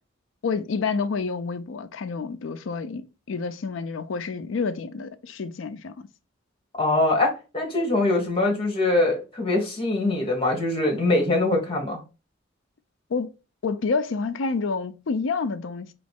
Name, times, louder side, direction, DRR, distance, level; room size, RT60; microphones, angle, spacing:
voice 1, 0.4-6.1 13.1-13.3 13.6-15.9, left 4 dB, 75° left, 0.5 m, -28 dB
voice 2, 6.8-12.0, left 2 dB, 30° left, 1.5 m, -23 dB
4.0 x 3.1 x 3.4 m
head